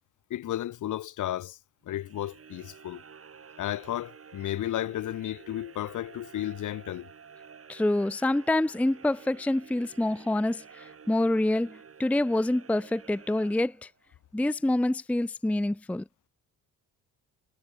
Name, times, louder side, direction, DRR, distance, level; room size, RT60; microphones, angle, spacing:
voice 1, 0.3-1.6 1.9-3.0 3.6-7.1, left 13 dB, 60° left, 1.2 m, -33 dB
sound 1, 1.9-14.1, right 6 dB, 45° right, 5.5 m, -51 dB
voice 2, 7.7-13.9 14.3-16.0, left 1 dB, 5° left, 0.6 m, -27 dB
supercardioid pair, 75°, 34 cm